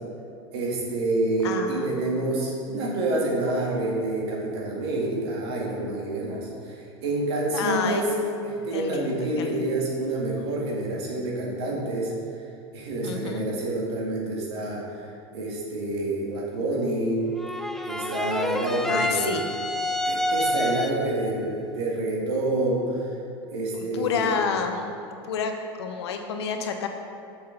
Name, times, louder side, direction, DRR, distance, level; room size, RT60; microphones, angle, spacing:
voice 1, 0.5-8.1 8.4-12.1 12.7-15.1 15.3-17.2 17.8-19.4 20.0-23.1 23.5-24.4, right 2 dB, 80° right, -3 dB, 1.9 m, -28 dB
voice 2, 1.4-2.1 7.5-8.1 8.7-9.7 13.0-13.5 18.9-19.4 23.7-24.9 25.2-26.9, left 6 dB, 85° left, 5 dB, 0.8 m, -29 dB
sound 1, 17.4-21.2, left 1 dB, 5° left, 0.4 m, -28 dB
7.2 x 7.1 x 3.9 m, 2.5 s
supercardioid pair, 110°, 13 cm